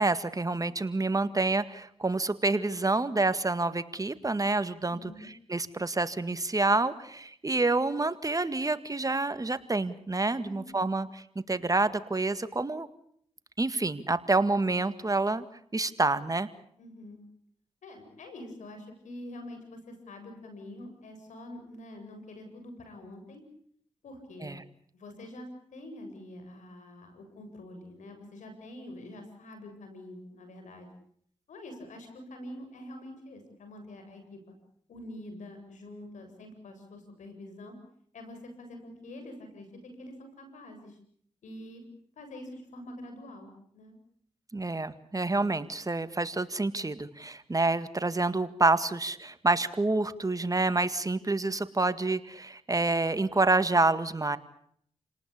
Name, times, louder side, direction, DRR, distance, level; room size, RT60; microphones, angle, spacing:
voice 1, 0.0-5.1 5.5-12.9 13.6-15.5 15.7-16.5 24.4-24.5 44.5-54.4, right 2 dB, 30° right, 12 dB, 1.9 m, -28 dB
voice 2, 4.9-5.3 10.4-10.9 16.8-17.2 17.8-23.4 24.0-24.5 24.9-30.9 31.5-34.4 34.9-37.7 38.1-41.0 41.4-41.9 42.2-44.0, left 1 dB, 80° left, 6 dB, 7.7 m, -46 dB
29.5 x 19.0 x 8.7 m, 0.66 s
cardioid pair, 50°, 12 cm